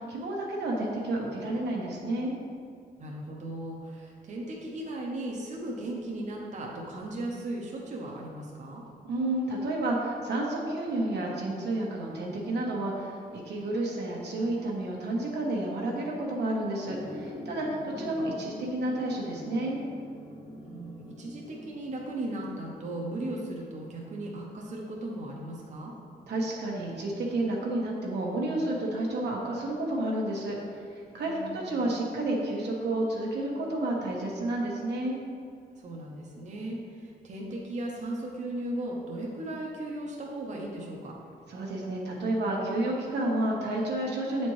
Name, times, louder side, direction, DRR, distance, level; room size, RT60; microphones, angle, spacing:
voice 1, 0.0-2.3 9.1-13.2 13.4-19.8 26.3-35.2 41.5-44.5, right 1 dB, 85° right, -2 dB, 1.1 m, -30 dB
voice 2, 3.0-8.8 17.6-18.2 20.6-25.9 31.1-31.7 35.8-41.1, right 1 dB, 45° right, -2 dB, 0.7 m, -37 dB
sound 1, 16.9-24.6, left 1 dB, 25° left, 0.6 m, -44 dB
8.2 x 4.3 x 3.1 m, 2.3 s
wide cardioid pair, 160°, 17 cm